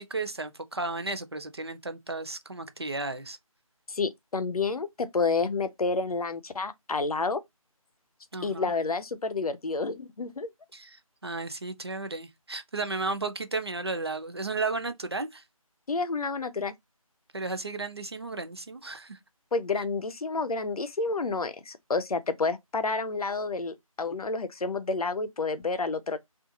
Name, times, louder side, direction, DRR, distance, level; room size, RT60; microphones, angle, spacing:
voice 1, 0.0-3.4 8.3-8.7 10.7-15.4 17.3-19.2, right 3 dB, 45° right, 0.5 m, -34 dB
voice 2, 3.9-7.4 8.4-10.5 15.9-16.7 19.5-26.2, left 4 dB, 80° left, 0.6 m, -29 dB
2.5 x 2.4 x 2.7 m
figure-of-eight pair, 175°, 19 cm